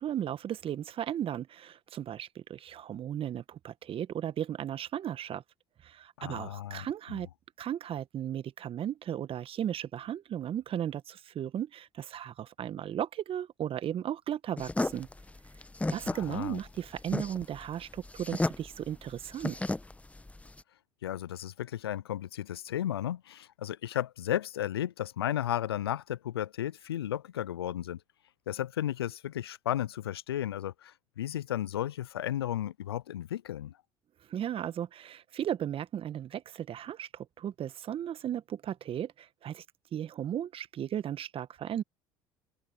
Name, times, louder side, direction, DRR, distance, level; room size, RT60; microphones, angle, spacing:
voice 1, 0.0-5.4 5.8-7.3 7.6-15.1 15.9-19.6 34.3-39.6 39.9-41.8, right 10 dB, 45° right, 1.4 m, -35 dB
voice 2, 6.2-7.2 16.0-16.6 21.0-28.0 28.5-33.7, left 11 dB, 90° left, 0.5 m, -34 dB
sound 1, 14.6-20.6, left 2 dB, 10° left, 1.1 m, -34 dB
open air
hypercardioid pair, 65°, 13 cm